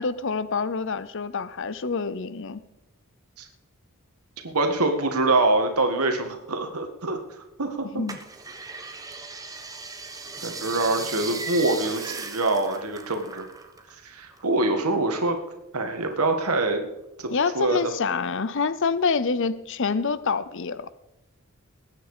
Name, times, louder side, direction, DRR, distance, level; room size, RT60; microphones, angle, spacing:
voice 1, 0.0-2.6 7.9-8.2 17.3-20.9, left 5 dB, 55° left, 16 dB, 0.7 m, -26 dB
voice 2, 4.4-7.2 7.6-8.0 10.4-13.5 14.0-15.4 15.7-16.8 17.2-17.9, right 2 dB, 85° right, 5 dB, 1.9 m, -25 dB
sound 1, 8.1-13.9 14.2-15.5 15.9-16.8 17.3-17.4, right 4 dB, 15° right, 1.3 m, -37 dB
20.5 x 9.4 x 5.0 m, 0.91 s
head